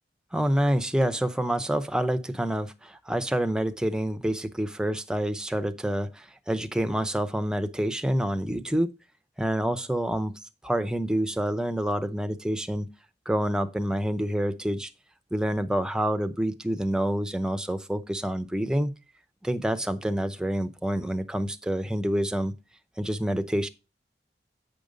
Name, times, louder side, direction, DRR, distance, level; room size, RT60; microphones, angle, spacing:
voice 1, 0.3-8.9 9.4-12.9 13.3-14.9 15.3-18.9 19.4-22.5 23.0-23.7, equal, 5° right, 0.7 m, -27 dB
8.7 x 5.3 x 5.1 m
head